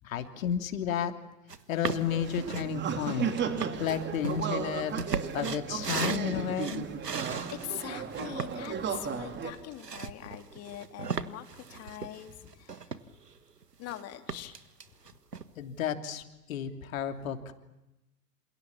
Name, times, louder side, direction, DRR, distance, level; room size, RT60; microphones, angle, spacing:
voice 1, 0.0-1.1 1.7-3.3 3.8-5.0 5.3-6.9 15.6-17.5, left 8 dB, 55° left, 7 dB, 3.1 m, -32 dB
sound 1, 1.5-1.6 1.8-2.7 3.3-7.7 8.1-13.3 13.6-14.0 14.3-15.5, right 5 dB, 80° right, 1.6 m, -37 dB
sound 2, 1.9-9.5, right 7 dB, 25° right, 3.2 m, -35 dB
voice 2, 7.1-13.0 13.8-14.6 14.9-15.0, left 13 dB, 30° left, 7 dB, 3.2 m, -43 dB
28.5 x 28.0 x 7.2 m, 0.94 s
figure-of-eight pair, 95°, 47 cm